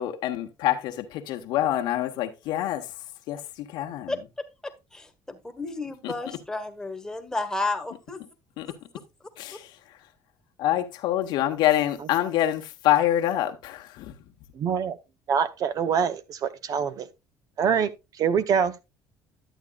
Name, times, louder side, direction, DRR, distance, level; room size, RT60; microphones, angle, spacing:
voice 1, 0.0-3.0 3.3-4.2 6.0-6.1 8.6-8.7 9.4-10.0 10.6-14.1, left 12 dB, 75° left, 1.1 m, -26 dB
voice 2, 4.1-8.2 9.5-9.6, left 2 dB, 5° left, 1.4 m, -32 dB
voice 3, 14.5-15.0 15.3-17.1 17.6-17.9 18.2-18.7, right 7 dB, 50° right, 0.7 m, -24 dB
11.0 x 8.2 x 2.3 m
cardioid pair, 105°, 8 cm